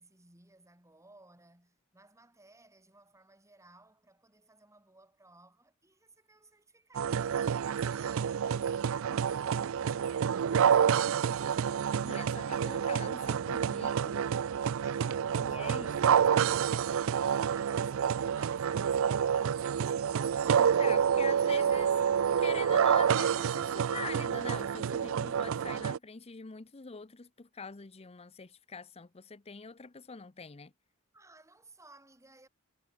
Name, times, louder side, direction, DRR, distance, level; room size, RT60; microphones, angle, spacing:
voice 1, 0.0-8.4 8.9-11.9 14.8-20.2 20.9-21.3 31.1-32.5, right 2 dB, 15° right, 5.3 m, -59 dB
sound 1, 6.9-26.0, right 8 dB, 65° right, 0.4 m, -28 dB
voice 2, 12.0-14.3 15.4-16.0 20.6-22.0 22.4-30.7, left 5 dB, 30° left, 0.7 m, -44 dB
head